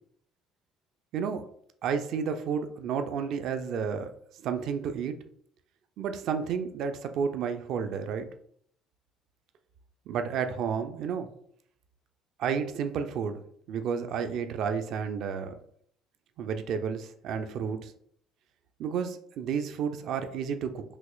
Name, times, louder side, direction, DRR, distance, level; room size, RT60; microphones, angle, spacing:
voice 1, 1.1-1.4 1.8-4.1 4.4-5.1 6.0-8.3 10.1-11.3 12.4-13.4 13.7-15.6 16.4-17.9 18.8-20.8, right 6 dB, 55° right, 8 dB, 0.4 m, -31 dB
5.1 x 2.9 x 2.3 m, 0.65 s
figure-of-eight pair, 55°, 0 cm